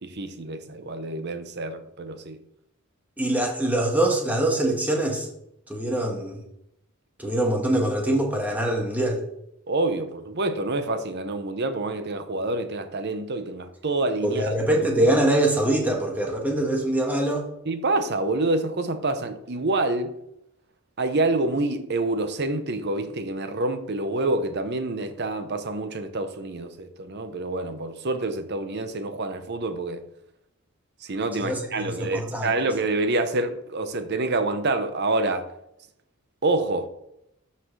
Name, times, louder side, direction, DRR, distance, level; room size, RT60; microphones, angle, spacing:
voice 1, 0.0-2.4 9.7-14.5 17.7-20.1 21.0-30.0 31.0-35.5 36.4-36.9, right 2 dB, 50° right, 0.8 m, -27 dB
voice 2, 3.2-5.3 5.7-6.4 7.2-9.2 14.2-17.5 31.4-32.5, right 1 dB, 10° right, 1.5 m, -24 dB
13.0 x 5.8 x 3.3 m
head